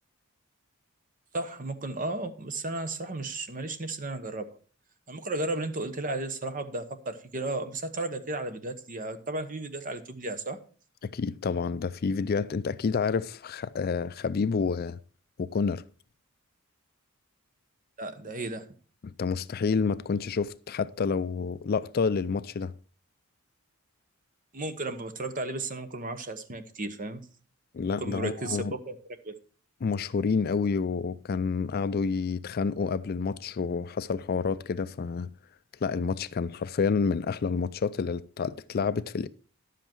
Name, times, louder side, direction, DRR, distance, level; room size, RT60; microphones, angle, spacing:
voice 1, 1.3-4.6 5.1-10.6 18.0-18.7 24.5-27.2 27.8-28.9 29.2-29.3, right 2 dB, 40° right, 1.0 m, -34 dB
voice 2, 11.0-15.0 15.4-15.8 19.0-22.7 27.7-28.8 29.8-35.3 35.8-39.3, left 5 dB, 45° left, 0.4 m, -29 dB
11.0 x 7.7 x 4.5 m
head